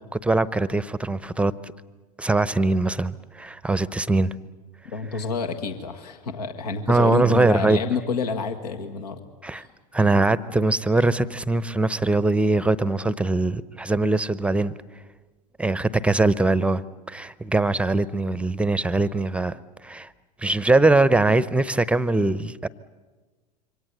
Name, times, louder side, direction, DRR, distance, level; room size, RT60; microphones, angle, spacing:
voice 1, 0.1-1.7 2.2-4.3 6.9-7.8 9.4-9.6 9.9-14.7 15.6-19.6 19.8-20.1 20.4-22.7, right 2 dB, 5° right, 17 dB, 0.8 m, -22 dB
voice 2, 4.9-9.2 9.5-9.7, left 5 dB, 75° left, 5 dB, 1.7 m, -29 dB
27.0 x 24.5 x 8.1 m, 1.3 s
figure-of-eight pair, 85°, 21 cm